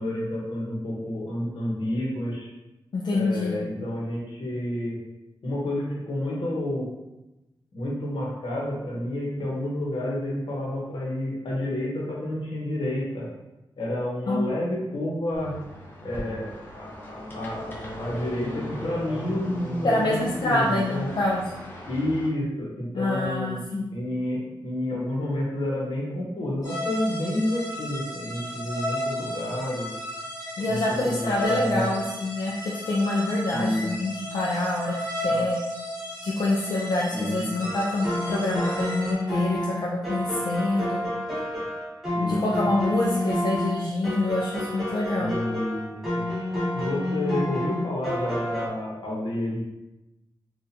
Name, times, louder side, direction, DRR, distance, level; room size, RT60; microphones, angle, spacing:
voice 1, 0.0-2.5 3.1-5.0 5.4-6.9 7.7-13.3 13.8-15.5 16.0-21.1 21.9-23.6 23.9-30.0 30.6-30.8 31.0-31.9 33.5-34.0 35.3-35.4 37.1-37.7 42.1-42.5 45.2-46.3 46.7-49.6, left 1 dB, 80° left, -4 dB, 1.0 m, -30 dB
voice 2, 2.9-3.6 14.3-14.4 19.8-21.4 22.9-23.9 30.6-34.9 35.2-35.6 36.2-41.0 42.2-45.3, left 2 dB, 60° left, -4 dB, 0.4 m, -26 dB
sound 1, 15.3-22.3, equal, 25° left, 0.7 m, -38 dB
sound 2, 26.6-39.1, equal, 40° left, 1.1 m, -33 dB
sound 3, 37.6-48.7, left 1 dB, 5° right, 0.9 m, -29 dB
4.1 x 2.4 x 2.7 m, 0.99 s
wide cardioid pair, 160°, 8 cm